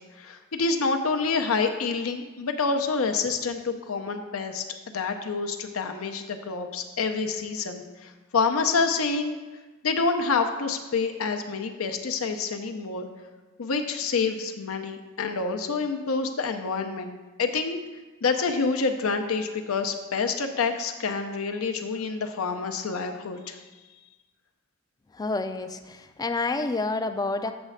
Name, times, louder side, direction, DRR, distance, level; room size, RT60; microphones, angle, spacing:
voice 1, 0.0-9.4 9.8-13.1 13.6-17.1 17.4-17.8 18.2-23.6, left 4 dB, 80° left, 6 dB, 0.6 m, -27 dB
voice 2, 25.1-27.5, left 3 dB, 20° left, 9 dB, 0.3 m, -29 dB
7.9 x 3.2 x 6.3 m, 1.2 s
head